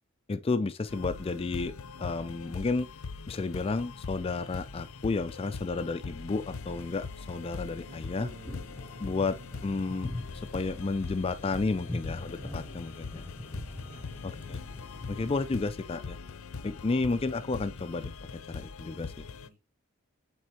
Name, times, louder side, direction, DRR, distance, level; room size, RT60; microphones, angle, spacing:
voice 1, 0.3-1.7 2.0-2.9 3.3-8.3 9.0-10.1 10.3-13.2 14.2-14.6 15.1-16.2 16.6-18.1 18.5-19.3, left 3 dB, 25° left, 0.3 m, -32 dB
sound 1, 0.9-19.5, left 4 dB, 90° left, 0.6 m, -42 dB
sound 2, 6.3-15.6, left 1 dB, 10° left, 0.8 m, -44 dB
voice 2, 7.8-8.7 9.4-9.8 13.9-14.6 19.1-19.6, right 1 dB, 40° right, 1.9 m, -52 dB
8.6 x 3.7 x 2.9 m
head